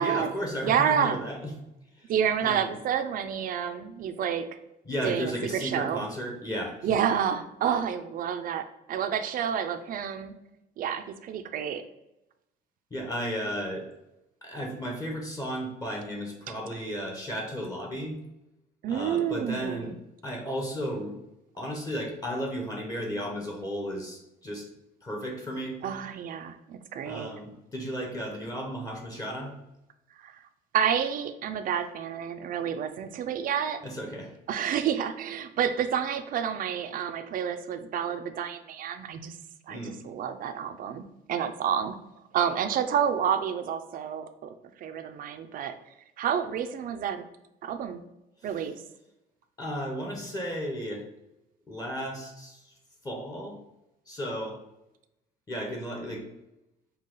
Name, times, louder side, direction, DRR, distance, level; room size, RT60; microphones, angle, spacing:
voice 1, 0.0-1.5 2.0-2.1 2.4-2.7 4.8-6.8 12.9-13.9 14.4-18.2 18.9-19.9 20.2-21.2 21.6-24.7 25.0-25.8 27.0-29.5 33.8-34.3 39.7-40.0 49.6-51.1 51.7-52.7 53.0-53.6 54.1-54.6 55.5-56.3, equal, 20° left, 0 dB, 1.0 m, -34 dB
voice 2, 0.6-1.2 2.1-4.4 5.0-6.1 6.8-10.3 10.8-11.8 18.8-20.0 25.8-27.3 30.2-30.4 30.7-33.8 34.5-39.4 39.7-41.0 41.3-42.0 42.3-45.7 46.2-47.2 47.6-48.0 48.4-48.8, right 8 dB, 55° right, 8 dB, 0.5 m, -29 dB
5.4 x 2.4 x 3.8 m, 0.91 s
cardioid pair, 110°, 17 cm